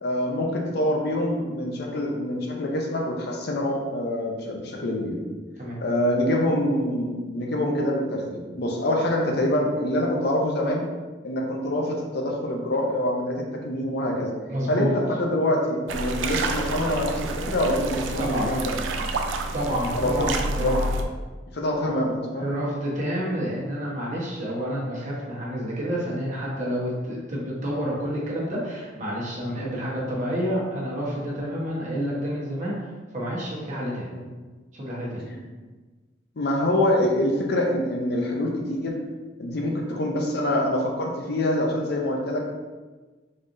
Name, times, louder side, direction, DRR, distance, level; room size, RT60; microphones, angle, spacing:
voice 1, 0.0-5.2 5.8-10.8 11.2-14.3 14.7-18.6 19.9-20.3 20.6-20.8 21.5-22.4 29.6-29.7 35.3-35.4 36.4-38.9 39.4-42.5, left 1 dB, 60° left, 0 dB, 0.6 m, -25 dB
voice 2, 14.5-14.9 18.2-18.6 19.5-20.8 22.3-32.7 33.1-34.1 34.7-35.2, equal, 40° right, -6 dB, 1.1 m, -29 dB
sound 1, 15.9-21.0, right 2 dB, 80° right, 0.4 m, -29 dB
4.0 x 3.2 x 2.6 m, 1.3 s
head